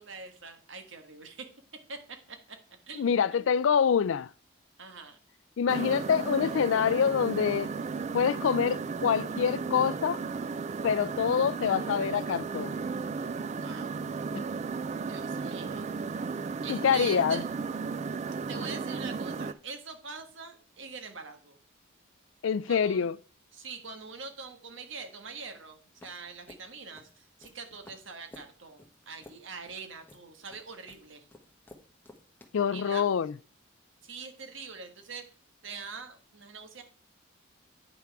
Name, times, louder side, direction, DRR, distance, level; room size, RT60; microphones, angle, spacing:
voice 1, 0.0-1.4 1.9-2.0 2.3-2.6 2.9-3.6 4.8-5.2 13.5-14.0 15.0-15.9 16.6-17.4 18.5-21.6 22.7-23.1 23.5-31.3 32.7-33.0 34.0-35.3 35.6-36.8, right 4 dB, 65° right, 1.5 m, -43 dB
voice 2, 3.0-4.3 5.6-7.7 8.1-10.2 10.8-12.7 14.3-14.4 16.7-17.4 22.4-23.2 32.5-33.3, left 7 dB, 75° left, 0.4 m, -26 dB
sound 1, 5.7-19.5, right 5 dB, 35° right, 0.3 m, -34 dB
sound 2, 26.0-32.4, left 2 dB, 10° left, 1.2 m, -54 dB
8.8 x 5.9 x 4.7 m
head